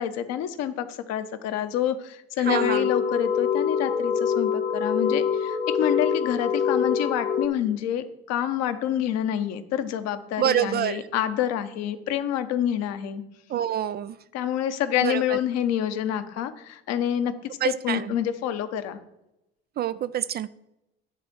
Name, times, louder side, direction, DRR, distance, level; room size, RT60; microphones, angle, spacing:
voice 1, 0.0-13.2 14.3-19.0, left 10 dB, 55° left, 10 dB, 1.0 m, -27 dB
sound 1, 2.4-7.5, left 7 dB, 90° left, 0.8 m, -25 dB
voice 2, 2.5-2.8 10.4-11.0 13.5-14.1 15.0-15.2 17.6-18.0 19.8-20.5, right 10 dB, 30° right, 15 dB, 0.4 m, -26 dB
10.5 x 4.2 x 6.3 m, 0.87 s
figure-of-eight pair, 60°, 31 cm